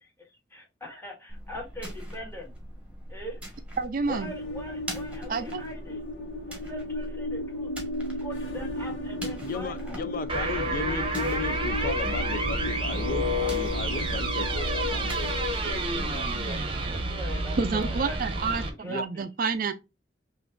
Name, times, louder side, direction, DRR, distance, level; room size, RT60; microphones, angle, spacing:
voice 1, 0.0-2.5 3.1-3.4 4.1-6.1 6.4-7.7 8.1-10.0 16.8-18.1 18.5-19.3, equal, 15° left, 1.6 m, -42 dB
sound 1, 1.3-16.6, equal, 5° right, 1.2 m, -41 dB
voice 2, 3.8-4.3 5.3-5.6 17.6-19.7, right 4 dB, 50° right, 0.4 m, -29 dB
sound 2, 4.0-18.7, left 1 dB, 80° left, 1.1 m, -37 dB
voice 3, 9.4-16.6 18.9-19.0, left 4 dB, 50° left, 0.5 m, -36 dB
sound 3, 10.3-18.7, right 1 dB, 30° right, 0.8 m, -29 dB
5.9 x 2.6 x 2.4 m
head